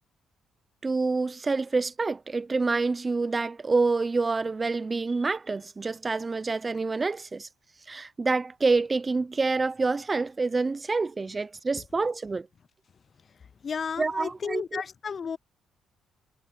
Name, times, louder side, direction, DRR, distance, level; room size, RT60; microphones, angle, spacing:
voice 1, 0.8-7.5 7.9-12.5 14.0-14.8, right 3 dB, 25° right, 0.7 m, -27 dB
voice 2, 13.6-15.4, left 6 dB, 45° left, 0.5 m, -33 dB
cardioid pair, 90°, 0 cm